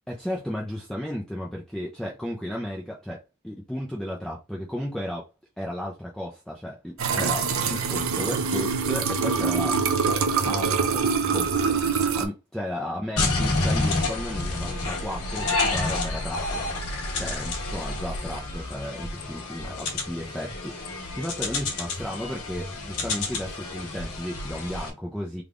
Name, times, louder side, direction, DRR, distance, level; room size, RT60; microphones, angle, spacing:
voice 1, 0.1-5.3 5.6-9.8 10.3-11.0 11.3-11.8 12.1-16.6 17.2-25.4, equal, 5° left, 0.4 m, -34 dB
sound 1, 7.0-12.3, right 5 dB, 65° right, 0.5 m, -24 dB
sound 2, 13.2-24.9, left 2 dB, 90° left, 1.3 m, -29 dB
3.4 x 2.3 x 3.6 m
head